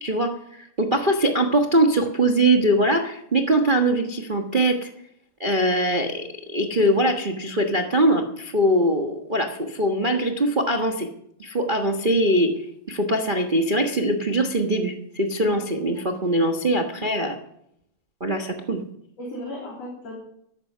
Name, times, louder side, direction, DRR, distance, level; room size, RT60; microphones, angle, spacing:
voice 1, 0.0-4.9 5.4-11.1 11.4-17.4 18.2-18.8, right 1 dB, 85° right, 2 dB, 0.4 m, -22 dB
voice 2, 19.2-20.2, left 1 dB, 60° left, -2 dB, 4.2 m, -36 dB
14.0 x 12.5 x 5.5 m, 0.73 s
omnidirectional pair, 3.3 m